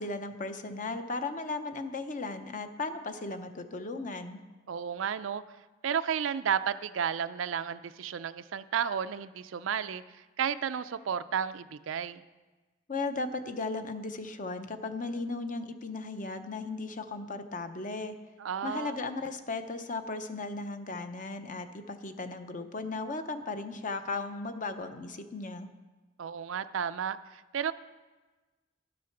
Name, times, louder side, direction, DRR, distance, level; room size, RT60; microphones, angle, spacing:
voice 1, 0.0-4.4 12.9-18.1 18.6-25.7, left 3 dB, 40° left, 8 dB, 0.7 m, -36 dB
voice 2, 4.7-5.4 5.8-10.0 10.4-12.2 18.4-19.0 26.2-27.7, right 7 dB, 90° right, 13 dB, 0.4 m, -32 dB
11.0 x 7.5 x 5.9 m, 1.2 s
head